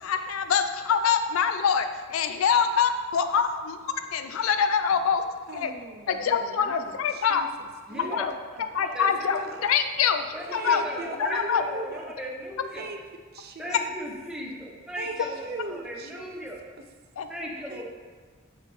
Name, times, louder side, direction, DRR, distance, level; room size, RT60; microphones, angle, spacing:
voice 1, 0.0-5.2 5.5-5.7 6.1-7.5 8.1-8.3 8.7-10.2 10.5-10.8 11.2-11.6 17.2-17.3, left 7 dB, 75° left, 9 dB, 0.4 m, -25 dB
voice 2, 5.5-8.2 9.0-9.7 10.5-12.0 12.7-13.0 13.3-13.8 15.0-16.5 17.7-17.8, right 2 dB, 50° right, 5 dB, 0.5 m, -39 dB
voice 3, 7.9-8.2 8.7-9.6 10.3-12.9 13.6-16.6 17.3-17.8, equal, 5° right, -2 dB, 0.8 m, -37 dB
6.8 x 4.1 x 3.3 m, 1.5 s
head